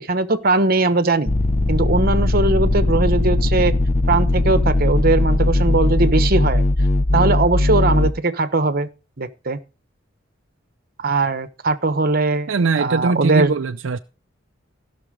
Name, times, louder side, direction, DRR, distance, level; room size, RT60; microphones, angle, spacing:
voice 1, 0.0-1.3 1.7-3.7 4.1-6.7 7.1-8.9 9.2-9.6 11.0-12.5 12.8-13.5, right 3 dB, 50° right, 1.1 m, -20 dB
sound 1, 1.3-8.1, left 1 dB, 35° left, 0.7 m, -18 dB
voice 2, 12.5-14.0, right 4 dB, 75° right, 0.5 m, -21 dB
16.0 x 6.2 x 5.0 m
head